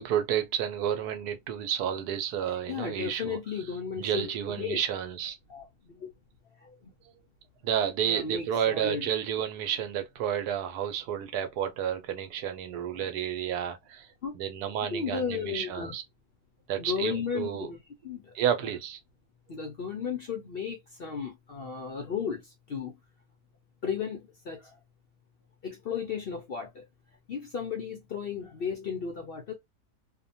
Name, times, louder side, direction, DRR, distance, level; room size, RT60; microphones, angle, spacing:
voice 1, 0.0-3.4 4.0-5.4 7.6-14.1 14.4-16.0 16.7-17.7 18.3-19.0, right 9 dB, 85° right, 1.2 m, -31 dB
voice 2, 2.5-4.8 5.5-6.1 6.6-6.9 8.1-9.1 13.0-13.1 14.2-14.3 14.9-15.9 16.8-18.3 18.6-18.7 19.5-23.0 23.8-24.8 25.6-26.8 27.3-29.5, left 6 dB, 55° left, 0.6 m, -35 dB
2.8 x 2.2 x 2.6 m
omnidirectional pair, 1.6 m